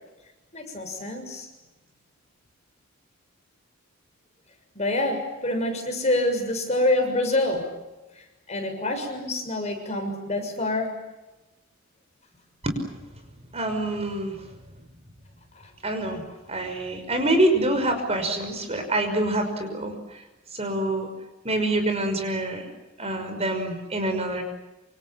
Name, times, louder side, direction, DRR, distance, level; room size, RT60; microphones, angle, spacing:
voice 1, 0.5-1.5 4.7-7.7 8.5-11.0, left 1 dB, 35° left, 4 dB, 6.7 m, -26 dB
voice 2, 13.5-14.5 15.8-16.2 16.5-20.2 20.5-21.1 21.4-22.7 23.0-24.4, right 1 dB, 30° right, 6 dB, 5.8 m, -26 dB
27.5 x 27.0 x 7.3 m, 1.0 s
head